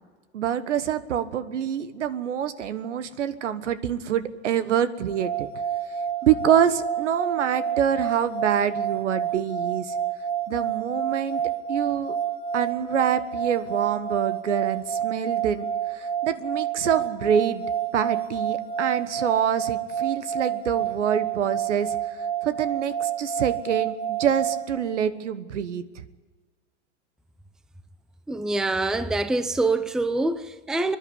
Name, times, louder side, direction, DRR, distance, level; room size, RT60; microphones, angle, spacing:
voice 1, 0.3-5.5 6.2-9.9 10.5-11.4 11.7-12.2 12.5-17.6 17.9-22.0 22.4-25.8, right 9 dB, 80° right, 1.4 m, -26 dB
sound 1, 5.1-24.7, right 8 dB, 15° left, 2.5 m, -29 dB
voice 2, 28.3-31.0, right 2 dB, ahead, 0.6 m, -25 dB
24.5 x 11.0 x 9.8 m
hypercardioid pair, 120°, 36 cm